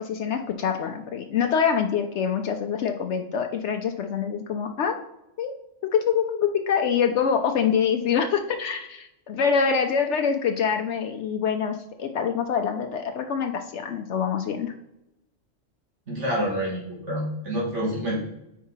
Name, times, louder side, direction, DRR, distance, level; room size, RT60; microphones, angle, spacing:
voice 1, 0.0-5.0 5.4-5.5 5.9-14.7, left 7 dB, 70° left, 5 dB, 0.8 m, -25 dB
voice 2, 16.1-18.2, equal, 65° right, -4 dB, 2.3 m, -27 dB
4.7 x 4.7 x 5.5 m, 0.87 s
omnidirectional pair, 1.3 m